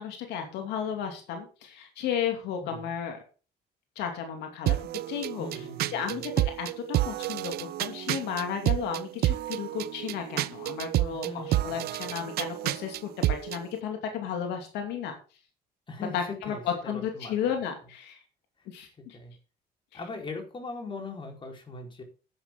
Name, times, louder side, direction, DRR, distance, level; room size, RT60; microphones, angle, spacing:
voice 1, 0.0-3.2 4.0-4.8 5.1-5.6 5.9-6.3 6.6-15.1 16.1-16.6 16.8-18.2 18.7-19.2, left 8 dB, 85° left, 4 dB, 2.7 m, -34 dB
sound 1, 4.7-13.6, right 15 dB, 65° right, 0.6 m, -30 dB
voice 2, 5.4-6.2 11.1-12.3 15.9-16.2 16.5-17.5 19.1-19.3 19.9-22.0, left 3 dB, 30° left, 2 dB, 4.3 m, -40 dB
11.0 x 9.3 x 3.8 m, 0.35 s
cardioid pair, 110°, 17 cm